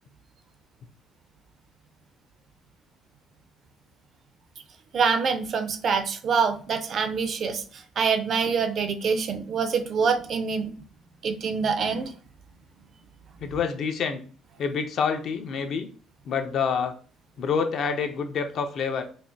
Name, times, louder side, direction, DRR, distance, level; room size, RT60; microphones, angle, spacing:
voice 1, 4.9-10.7 11.2-12.1, right 5 dB, 40° right, 8 dB, 0.4 m, -25 dB
voice 2, 13.4-14.2 14.6-15.9 16.2-16.9 17.4-19.1, left 6 dB, 45° left, 7 dB, 0.5 m, -27 dB
4.6 x 2.5 x 2.7 m, 0.41 s
cardioid pair, 165°, 0 cm